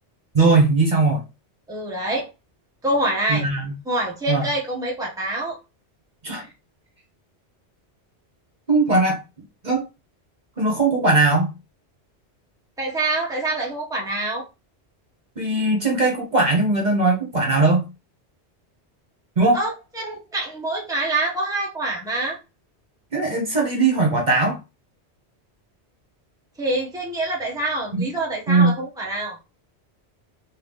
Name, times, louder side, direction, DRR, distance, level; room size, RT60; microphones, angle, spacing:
voice 1, 0.3-1.2 3.3-3.7 4.3-4.4 6.2-6.5 8.7-9.2 9.6-9.8 10.6-11.5 15.4-17.9 19.4-19.6 23.1-24.6 27.9-28.0 28.5-28.7, right 3 dB, 40° right, 1.2 m, -19 dB
voice 2, 1.7-2.3 2.8-3.5 3.8-5.6 12.8-14.4 19.5-22.4 26.6-29.4, right 2 dB, 5° right, 1.1 m, -26 dB
3.9 x 2.8 x 3.4 m
omnidirectional pair, 1.1 m